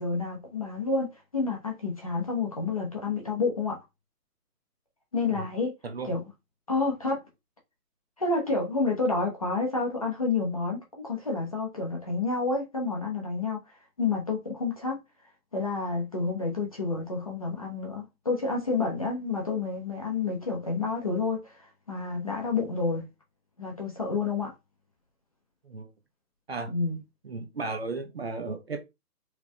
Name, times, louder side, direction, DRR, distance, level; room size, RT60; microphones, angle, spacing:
voice 1, 0.0-3.8 5.1-5.7 6.0-6.2 6.7-7.2 8.2-13.6 14.0-15.0 15.5-21.5 21.9-23.0 23.6-24.5 26.7-27.0, left 4 dB, 20° left, 0.8 m, -29 dB
voice 2, 27.2-28.8, right 3 dB, 40° right, 0.9 m, -35 dB
4.6 x 3.4 x 3.4 m
hypercardioid pair, 175°, 48 cm